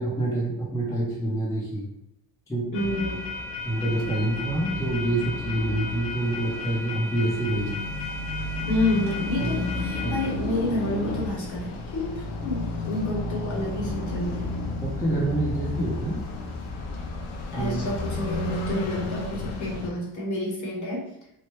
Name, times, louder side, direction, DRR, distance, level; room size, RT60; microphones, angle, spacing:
voice 1, 0.0-1.9 2.5-2.7 3.6-7.9 9.4-9.7 10.0-10.2 14.8-16.2 17.5-17.9, right 2 dB, 5° left, -6 dB, 0.7 m, -27 dB
sound 1, 2.7-19.9, left 2 dB, 85° left, 0.8 m, -32 dB
voice 2, 2.7-3.3 8.7-14.5 17.5-21.0, left 1 dB, 40° left, -2 dB, 1.0 m, -29 dB
3.3 x 2.1 x 3.1 m, 0.80 s
cardioid pair, 110°, 48 cm